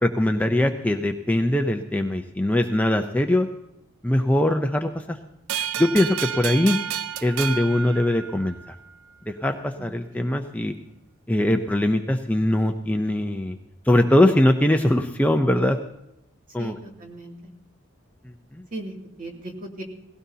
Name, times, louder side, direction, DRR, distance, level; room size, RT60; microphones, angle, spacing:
voice 1, 0.0-3.5 4.0-5.2 5.8-6.8 7.2-8.7 9.3-10.7 11.3-13.6 13.9-15.8 16.5-16.7 18.5-18.6, left 1 dB, 10° left, 5 dB, 0.6 m, -21 dB
sound 1, 5.5-8.7, right 9 dB, 85° right, 0.4 m, -30 dB
voice 2, 9.8-10.3 16.6-17.5 18.7-19.8, right 2 dB, 40° right, 1 dB, 2.6 m, -38 dB
18.5 x 16.5 x 2.8 m, 0.85 s
head